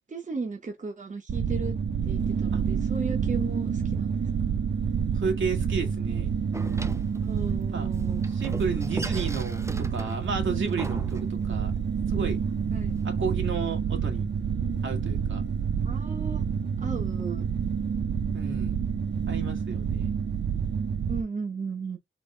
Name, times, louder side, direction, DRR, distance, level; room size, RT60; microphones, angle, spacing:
voice 1, 0.1-1.7 2.0-4.5 7.2-8.2 12.7-13.0 15.8-16.5 16.8-17.5 21.1-22.0, right 4 dB, 40° right, 1.3 m, -35 dB
sound 1, 1.3-21.2, right 7 dB, 65° right, 0.6 m, -28 dB
voice 2, 5.1-6.3 7.7-7.9 8.3-11.7 12.1-12.4 13.0-14.3 14.8-15.4 18.3-18.8 19.3-20.2, right 5 dB, 80° right, 2.1 m, -32 dB
Door, 6.5-13.1, right 2 dB, 15° right, 0.6 m, -41 dB
4.3 x 3.4 x 3.4 m
wide cardioid pair, 100°, 20 cm